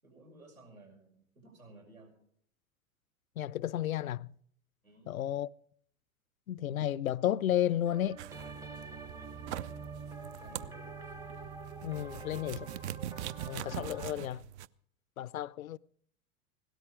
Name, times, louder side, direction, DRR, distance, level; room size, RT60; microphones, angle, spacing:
voice 1, 0.0-2.1 4.8-5.1 9.2-11.1 12.0-12.7, right 2 dB, 85° right, 6.2 m, -56 dB
voice 2, 3.4-4.3 5.1-5.5 6.5-8.2 11.8-12.6 13.5-14.5 15.2-15.8, left 11 dB, 80° left, 0.5 m, -32 dB
sound 1, 7.8-14.1, right 4 dB, 10° right, 0.7 m, -46 dB
sound 2, 8.2-14.7, right 12 dB, 55° right, 0.6 m, -43 dB
17.0 x 13.0 x 4.9 m
figure-of-eight pair, 90°, 41 cm